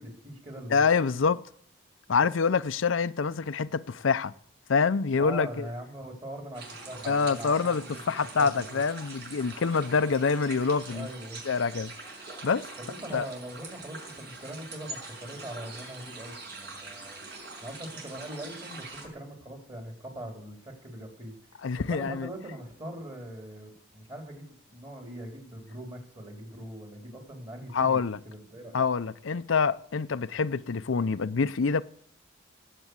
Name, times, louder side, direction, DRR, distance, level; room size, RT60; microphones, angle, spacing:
voice 1, 0.0-0.8 5.2-8.0 8.4-8.7 10.9-11.4 12.8-17.2 17.6-21.4 21.7-28.8, right 1 dB, 30° right, 4.2 m, -41 dB
voice 2, 0.7-1.4 2.1-4.3 4.7-5.7 7.1-11.1 11.5-11.9 12.4-12.7 13.1-13.3 21.6-22.3 27.7-28.2 28.7-31.8, left 5 dB, 80° left, 0.5 m, -26 dB
sound 1, 6.5-19.1, right 3 dB, 55° right, 6.3 m, -44 dB
18.0 x 8.2 x 8.2 m
head